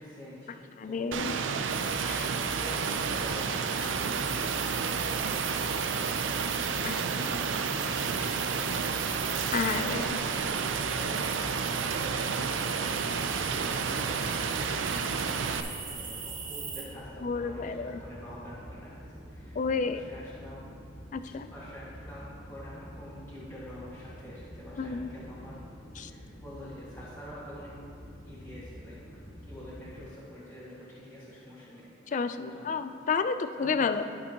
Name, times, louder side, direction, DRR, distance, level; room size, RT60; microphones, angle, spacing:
voice 1, 0.0-1.1 2.1-4.2 4.4-6.0 6.4-7.9 8.2-8.9 9.6-12.7 13.5-20.6 21.4-25.5 26.1-27.7 28.2-29.0 29.5-31.9 32.5-32.7 33.5-34.0, equal, 10° left, -12 dB, 1.6 m, -47 dB
voice 2, 0.8-1.4 2.0-2.3 6.8-7.4 9.5-10.2 17.2-18.0 19.6-20.0 21.1-21.5 24.8-25.1 26.0-26.1 32.1-34.1, left 5 dB, 40° left, 10 dB, 0.3 m, -31 dB
Rain, 1.1-15.6, right 5 dB, 75° right, 0.4 m, -31 dB
sound 1, 1.7-16.9, right 5 dB, 45° right, 1.2 m, -40 dB
sound 2, 12.8-30.0, equal, 60° left, 2.1 m, -48 dB
12.0 x 6.7 x 2.9 m, 2.5 s
head